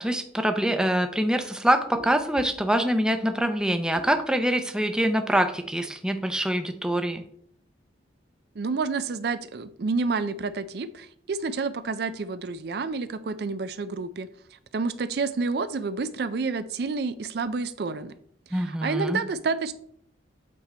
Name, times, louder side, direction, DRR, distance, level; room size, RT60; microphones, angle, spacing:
voice 1, 0.0-7.2 18.5-19.2, right 1 dB, 5° right, 7 dB, 0.5 m, -25 dB
voice 2, 8.6-18.1 18.5-19.7, right 4 dB, 55° right, 12 dB, 0.4 m, -29 dB
8.1 x 4.3 x 4.2 m, 0.64 s
head